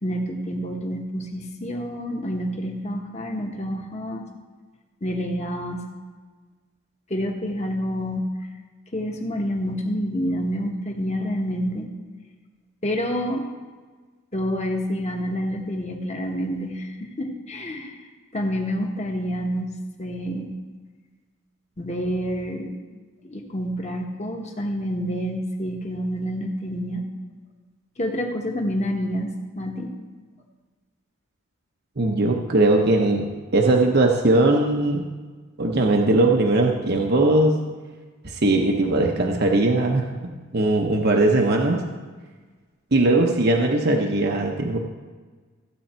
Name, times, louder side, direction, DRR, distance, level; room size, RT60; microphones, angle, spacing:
voice 1, 0.0-4.2 5.0-5.9 7.1-8.3 8.9-11.9 12.8-13.5 14.3-18.0 18.3-20.5 21.8-22.8 23.2-27.1 28.0-29.9, equal, 30° left, 2 dB, 1.3 m, -28 dB
voice 2, 32.0-33.3 33.5-35.0 35.6-37.6 38.2-40.1 40.5-41.8 42.9-44.8, right 2 dB, 50° right, 1 dB, 0.8 m, -19 dB
15.0 x 7.8 x 4.5 m, 1.4 s
head